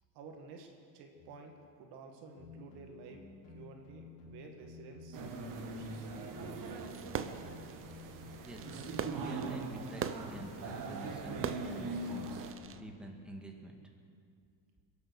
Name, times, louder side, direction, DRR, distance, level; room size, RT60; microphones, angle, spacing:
voice 1, 0.1-3.2 3.5-6.9, right 4 dB, 75° right, 3 dB, 2.2 m, -52 dB
sound 1, 1.2-1.4 2.4-5.4 6.3-9.3 10.2-12.4, left 4 dB, 80° left, 3.2 m, -53 dB
sound 2, 5.1-12.5, right 3 dB, 50° right, 1.8 m, -42 dB
Fireworks, 6.8-12.8, right 7 dB, 35° right, 0.8 m, -43 dB
voice 2, 9.1-12.3 12.7-13.8, right 1 dB, ahead, 0 dB, 1.9 m, -48 dB
22.0 x 8.3 x 6.5 m, 2.3 s
supercardioid pair, 105°, 40 cm